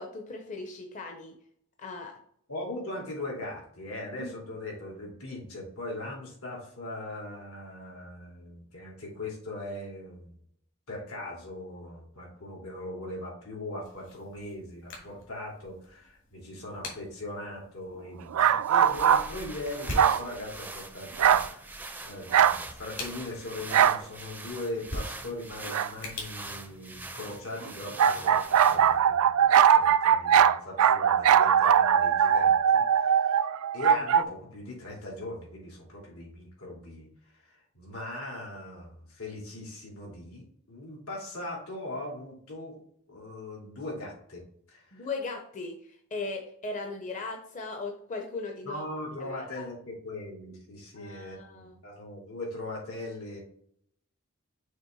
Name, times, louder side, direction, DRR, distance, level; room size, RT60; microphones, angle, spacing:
voice 1, 0.0-1.3 1.8-2.1 4.2-4.3 44.9-48.8 49.2-49.7 50.9-51.7, left 3 dB, 35° left, 3 dB, 0.7 m, -38 dB
voice 2, 2.5-10.3 10.9-33.5 33.7-42.8 43.1-44.4 44.7-45.1 48.6-53.4, left 1 dB, 80° left, -2 dB, 2.9 m, -40 dB
sound 1, 13.8-27.5, left 1 dB, 65° left, 2.5 m, -45 dB
sound 2, 18.3-19.3 20.0-20.3 21.2-21.5 22.3-22.6 23.7-24.0 25.7-25.9 28.0-34.2, right 8 dB, 75° right, 0.3 m, -21 dB
sound 3, 18.4-29.1, right 2 dB, 10° right, 0.5 m, -43 dB
6.5 x 3.4 x 5.5 m, 0.66 s
head